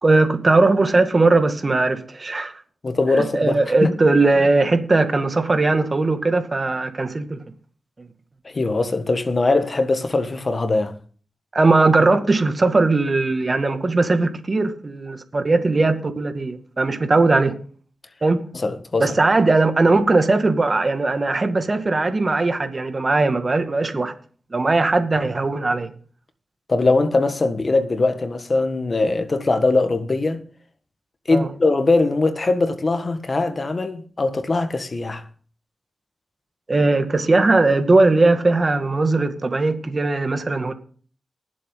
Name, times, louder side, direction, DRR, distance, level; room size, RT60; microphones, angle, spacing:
voice 1, 0.0-2.5 3.1-7.4 11.5-17.5 18.2-18.4 19.0-24.1 24.5-25.9 31.3-31.5 36.7-40.7, right 3 dB, 45° right, 2.1 m, -19 dB
voice 2, 2.8-3.9 8.4-10.9 18.5-19.2 26.7-30.4 31.3-35.2, left 3 dB, 50° left, 1.6 m, -21 dB
20.0 x 7.6 x 3.9 m
cardioid pair, 45°, 0 cm